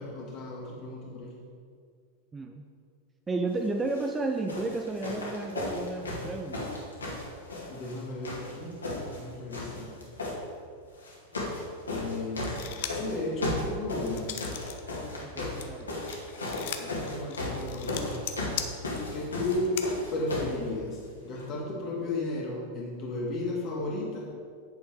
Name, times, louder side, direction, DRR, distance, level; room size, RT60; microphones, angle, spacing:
voice 1, 0.0-1.4 7.7-9.9 11.9-14.4 16.8-18.2 19.1-24.3, left 2 dB, 35° left, -2 dB, 2.2 m, -34 dB
voice 2, 2.3-2.6 3.3-6.7 15.2-15.9, right 2 dB, 15° right, 4 dB, 0.6 m, -32 dB
sound 1, 3.8-4.1 4.5-8.0 8.2-9.2 9.5-10.4 11.0-11.6 11.9-20.6 21.4-21.5, left 2 dB, 75° left, 2.0 m, -35 dB
sound 2, 12.4-13.1 13.6-14.8 15.1-19.9, left 10 dB, 50° left, 0.7 m, -39 dB
8.6 x 7.0 x 4.6 m, 2.1 s
figure-of-eight pair, 90°, 0 cm